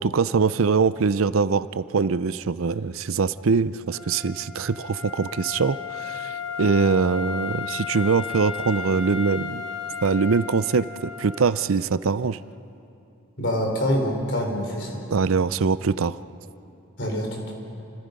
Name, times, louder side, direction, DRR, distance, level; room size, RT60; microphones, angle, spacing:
voice 1, 0.0-6.3 6.6-9.6 10.0-12.4 15.1-16.2, right 5 dB, 70° right, 15 dB, 0.5 m, -23 dB
Wind instrument woodwind instrument, 3.9-11.7, left 6 dB, 85° left, 1.2 m, -34 dB
voice 2, 13.4-15.0 17.0-17.4, equal, 55° left, 1 dB, 4.3 m, -25 dB
29.5 x 25.5 x 5.3 m, 2.8 s
head